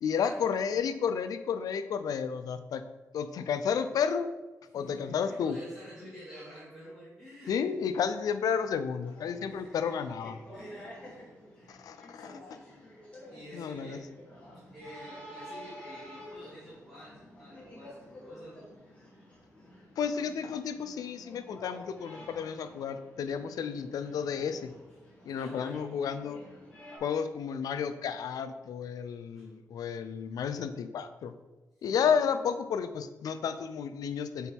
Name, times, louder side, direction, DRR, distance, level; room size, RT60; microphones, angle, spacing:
voice 1, 0.0-2.8 3.1-4.3 4.7-5.6 7.5-10.4 11.7-12.4 13.5-14.0 20.0-24.7 25.2-26.4 27.0-31.3 31.8-34.5, left 7 dB, 85° left, 11 dB, 0.5 m, -32 dB
voice 2, 4.7-7.9 9.4-10.1 10.5-14.3 14.7-19.3 25.4-25.8 29.3-29.5 31.8-31.9, equal, 5° right, -11 dB, 2.1 m, -50 dB
sound 1, 9.0-27.0, equal, 20° left, 1.9 m, -50 dB
8.1 x 4.5 x 3.6 m, 1.1 s
wide cardioid pair, 165°, 6 cm